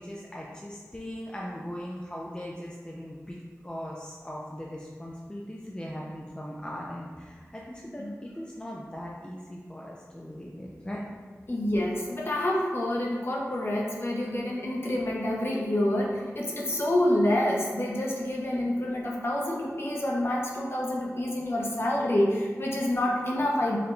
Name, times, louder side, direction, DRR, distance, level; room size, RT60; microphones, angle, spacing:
voice 1, 0.0-3.4 3.6-11.0, equal, 15° left, -3 dB, 0.4 m, -39 dB
voice 2, 11.5-23.8, left 1 dB, 45° left, -3 dB, 0.8 m, -27 dB
4.8 x 2.2 x 3.1 m, 1.5 s
wide cardioid pair, 60°, 6 cm